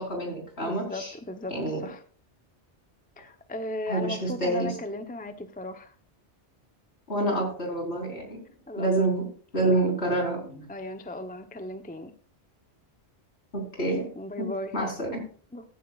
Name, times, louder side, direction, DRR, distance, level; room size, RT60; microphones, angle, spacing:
voice 1, 0.0-1.1 1.5-1.8 3.9-4.8 7.1-8.4 8.8-9.2 9.5-10.6 13.5-14.1 14.4-14.5 14.7-15.2, right 2 dB, 65° left, 0 dB, 4.5 m, -27 dB
voice 2, 0.6-1.6 1.8-2.0 3.2-5.9 8.7-9.1 9.6-9.8 10.7-12.1 13.9-14.7 15.5-15.6, left 1 dB, 10° left, 8 dB, 0.7 m, -36 dB
15.0 x 10.5 x 2.4 m, 0.44 s
omnidirectional pair, 1.2 m